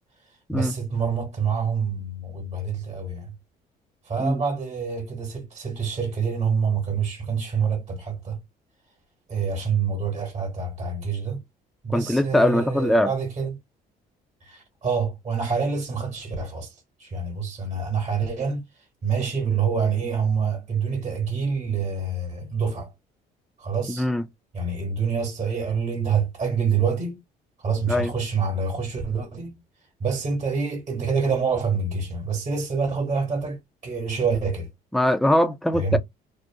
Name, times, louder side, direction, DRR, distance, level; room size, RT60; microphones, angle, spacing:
voice 1, 0.5-3.3 4.1-8.4 9.3-11.4 11.8-13.6 14.4-18.6 19.0-22.9 23.6-24.1 24.5-27.2 27.6-29.6 30.0-34.7 35.7-36.0, right 5 dB, 40° right, 1.1 m, -26 dB
voice 2, 11.9-13.1 23.9-24.3 27.9-28.1 34.9-36.0, left 1 dB, ahead, 0.3 m, -21 dB
2.5 x 2.0 x 2.7 m
cardioid pair, 110°, 17 cm